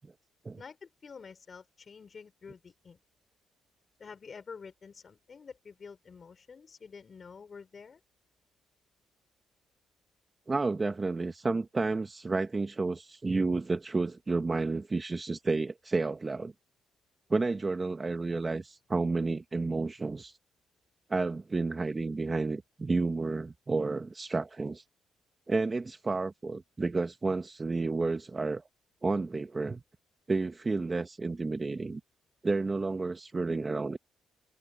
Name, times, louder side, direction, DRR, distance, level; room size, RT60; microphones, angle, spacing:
voice 1, 0.6-3.0 4.0-8.0, left 5 dB, 40° left, 4.7 m, -48 dB
voice 2, 10.5-16.5 17.3-20.4 21.1-24.8 25.5-28.6 29.0-29.8 30.3-32.0 32.4-34.0, right 3 dB, 25° right, 1.2 m, -31 dB
cardioid pair, 90°, 0 cm